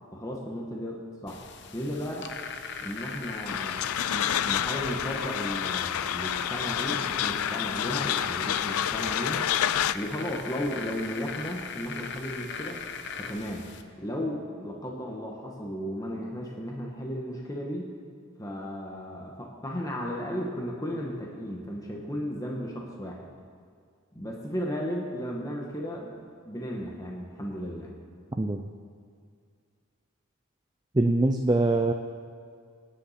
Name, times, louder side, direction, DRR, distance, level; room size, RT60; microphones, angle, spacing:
voice 1, 0.1-1.4 1.7-2.3 2.8-9.5 9.9-12.8 13.2-13.7 14.0-17.9 18.4-23.3 24.1-27.9, equal, 15° left, -1 dB, 1.3 m, -35 dB
sound 1, 1.3-13.8, left 5 dB, 50° left, 0.9 m, -38 dB
sound 2, 3.5-9.9, left 10 dB, 85° left, 0.4 m, -29 dB
voice 2, 30.9-31.9, right 2 dB, 20° right, 5 dB, 0.5 m, -23 dB
24.5 x 10.0 x 4.3 m, 2.2 s
head